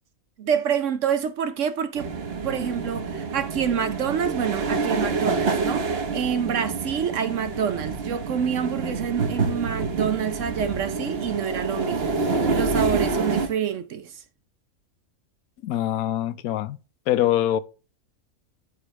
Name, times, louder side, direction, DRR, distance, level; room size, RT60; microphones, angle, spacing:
voice 1, 0.4-2.1 2.4-14.2, right 8 dB, 65° right, 1.0 m, -27 dB
sound 1, 1.9-13.5, right 4 dB, 45° right, 1.2 m, -27 dB
voice 2, 15.6-16.8 17.1-17.6, left 12 dB, 80° left, 1.1 m, -23 dB
13.0 x 4.9 x 3.1 m
omnidirectional pair, 1.5 m